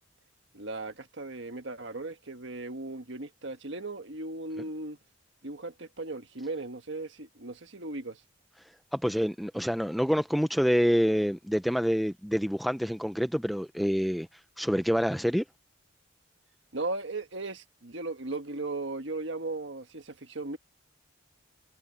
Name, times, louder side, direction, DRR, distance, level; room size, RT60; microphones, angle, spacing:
voice 1, 0.5-5.0 5.4-8.2 16.7-20.6, right 2 dB, 65° right, 1.6 m, -37 dB
voice 2, 8.9-14.3 14.6-15.4, equal, ahead, 0.5 m, -27 dB
head